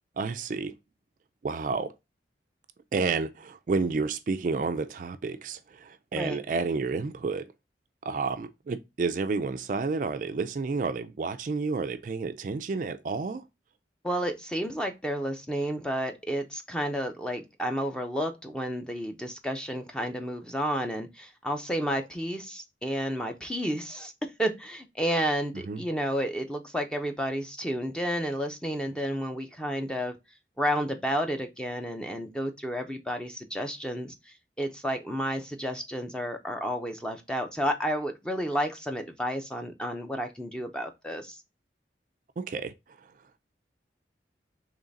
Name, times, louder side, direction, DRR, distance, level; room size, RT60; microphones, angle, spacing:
voice 1, 0.2-0.7 1.4-1.9 2.9-7.5 8.0-13.5 25.7-25.8 42.4-43.1, right 4 dB, 45° right, 0.3 m, -30 dB
voice 2, 14.0-24.1 24.4-30.1 30.6-41.4, equal, 5° left, 0.6 m, -31 dB
3.7 x 3.2 x 3.9 m
head